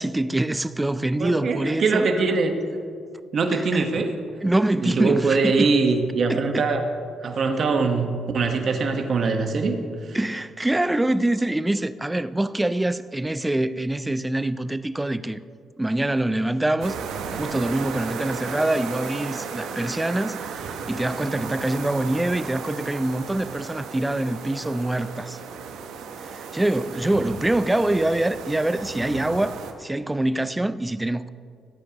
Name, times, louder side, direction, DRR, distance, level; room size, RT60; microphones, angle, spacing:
voice 1, 0.0-2.1 3.5-4.0 4.4-5.7 6.3-6.6 10.1-15.4 15.8-17.0 17.3-20.4 20.9-25.4 26.2-31.3, right 1 dB, 10° right, 0.4 m, -25 dB
voice 2, 1.2-2.5 3.3-4.1 4.8-6.9 7.2-9.8 10.0-10.2, right 4 dB, 55° right, 1.2 m, -22 dB
sound 1, 16.8-29.7, right 6 dB, 85° right, 0.9 m, -35 dB
17.0 x 8.9 x 2.9 m
cardioid pair, 90°, 0 cm